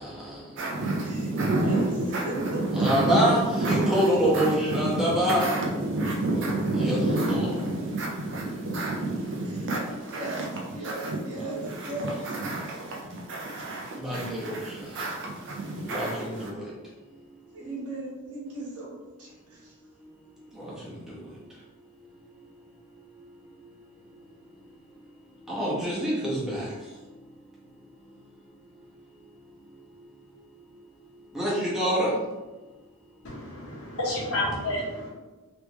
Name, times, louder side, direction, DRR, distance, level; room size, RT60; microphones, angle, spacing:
sound 1, 0.6-16.5, right 2 dB, 55° right, 0.6 m, -29 dB
voice 1, 1.0-2.9 3.6-4.0 4.6-5.1 9.4-12.2 17.5-18.9 19.2-19.7, right 1 dB, 85° right, -5 dB, 1.4 m, -38 dB
voice 2, 2.8-5.4 6.8-7.5 14.0-14.5 15.9-16.5 20.6-20.7 25.6-26.6 31.3-32.1, equal, ahead, -8 dB, 1.2 m, -25 dB
voice 3, 33.2-35.1, left 1 dB, 70° left, -4 dB, 1.2 m, -30 dB
3.4 x 3.2 x 3.0 m, 1.2 s
head